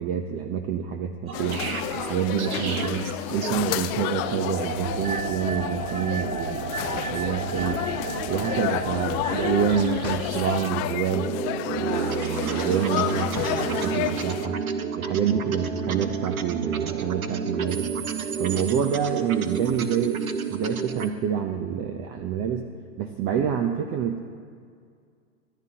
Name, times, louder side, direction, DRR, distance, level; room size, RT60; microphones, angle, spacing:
voice 1, 0.0-1.7 1.9-3.0 3.3-7.9 8.3-11.3 11.7-14.6 15.0-17.9 18.4-22.7 23.0-24.2, right 8 dB, 30° right, 5 dB, 0.8 m, -27 dB
sound 1, 1.3-14.5, left 14 dB, 30° left, 0.5 m, -31 dB
sound 2, 1.3-21.1, right 6 dB, 80° right, 1.1 m, -31 dB
25.0 x 12.0 x 2.9 m, 2.1 s
hypercardioid pair, 115°, 42 cm